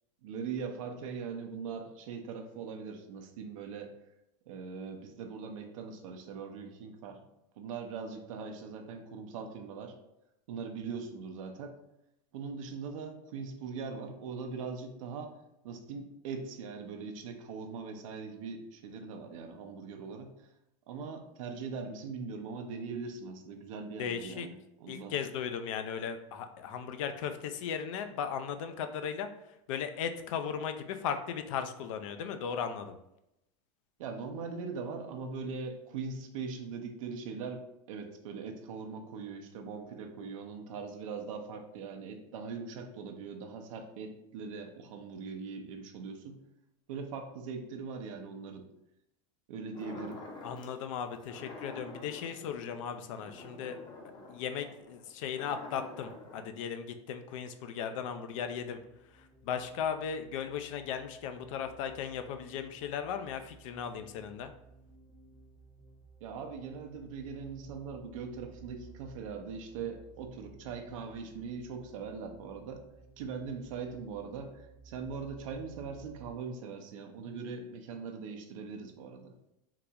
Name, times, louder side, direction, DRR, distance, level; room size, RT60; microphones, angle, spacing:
voice 1, 0.2-3.9 4.5-7.3 7.6-9.9 10.5-11.8 12.3-15.3 15.6-20.5 20.9-25.1 34.0-37.6 37.9-46.4 46.9-48.7 49.5-50.2 66.2-72.8 73.2-79.3, right 5 dB, 80° right, 4 dB, 0.6 m, -41 dB
voice 2, 24.0-24.5 24.9-32.9 50.4-53.8 54.3-58.8 59.0-64.5, left 7 dB, 75° left, 8 dB, 0.4 m, -37 dB
sound 1, 49.7-50.8 51.2-56.4, left 2 dB, 25° left, 0.6 m, -48 dB
sound 2, 58.3-76.4, right 4 dB, 10° right, 0.6 m, -57 dB
3.8 x 2.3 x 2.8 m, 0.84 s
supercardioid pair, 120°, 17 cm